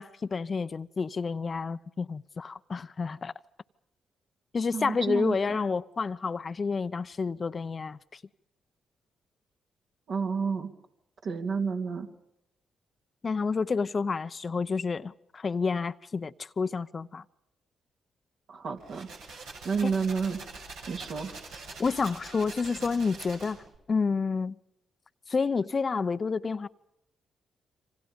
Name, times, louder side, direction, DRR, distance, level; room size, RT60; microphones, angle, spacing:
voice 1, 0.0-3.3 4.5-8.2 13.2-17.2 19.8-19.9 21.8-23.6 23.9-24.5 25.3-26.7, left 4 dB, 45° left, 0.8 m, -29 dB
voice 2, 4.7-5.4 10.1-10.7 11.2-12.1 18.5-19.1 19.6-20.4 20.9-21.3, right 5 dB, 60° right, 3.0 m, -30 dB
sound 1, 18.8-23.8, right 3 dB, 80° right, 6.1 m, -44 dB
27.5 x 26.0 x 5.3 m
hypercardioid pair, 45°, 0 cm